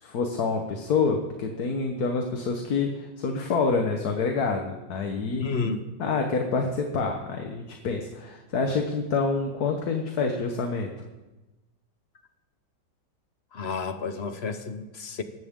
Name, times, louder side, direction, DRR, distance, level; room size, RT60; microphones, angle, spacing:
voice 1, 0.0-5.5 6.0-10.9, left 4 dB, 60° left, 1.6 m, -27 dB
voice 2, 5.4-5.8 13.5-15.2, left 4 dB, 45° left, 1.1 m, -31 dB
19.0 x 14.5 x 3.7 m
omnidirectional pair, 1.9 m